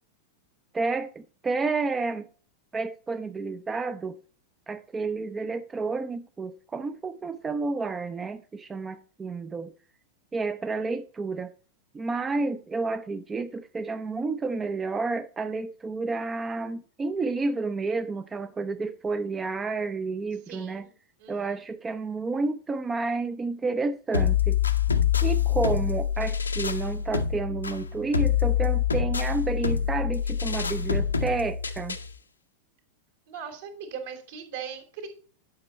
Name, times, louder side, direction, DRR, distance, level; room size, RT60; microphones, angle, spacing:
voice 1, 0.7-2.3 2.7-4.2 4.7-9.7 10.3-11.5 11.9-20.9 21.3-24.6 25.2-32.0, right 3 dB, 15° right, 0.4 m, -30 dB
voice 2, 20.5-20.9 21.2-21.6 33.3-35.1, right 7 dB, 60° right, 2.7 m, -40 dB
sound 1, 24.1-32.1, left 8 dB, 80° left, 0.7 m, -26 dB
10.5 x 6.0 x 4.2 m
figure-of-eight pair, 90°, 0 cm